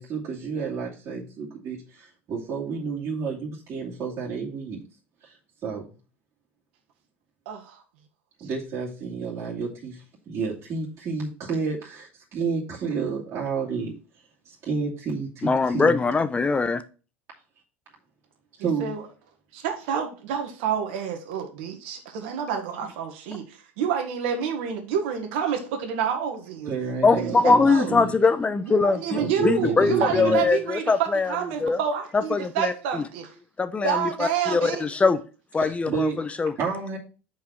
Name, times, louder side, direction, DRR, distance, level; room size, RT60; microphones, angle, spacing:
voice 1, 0.0-4.8 5.2-5.3 5.6-5.8 8.4-13.9 14.6-16.0 18.6-18.9 26.7-28.1 29.2-30.4 35.6-36.2 36.6-37.0, right 5 dB, 45° right, 2.7 m, -30 dB
voice 2, 7.4-7.8 18.6-19.0 19.5-26.7 27.2-27.9 28.6-33.3 33.8-34.9, right 7 dB, 70° right, 1.5 m, -28 dB
voice 3, 15.4-16.8 27.0-31.8 32.3-33.0 33.6-35.2 35.5-36.5, left 4 dB, 20° left, 0.8 m, -22 dB
5.6 x 4.8 x 5.9 m
hypercardioid pair, 85°, 6 cm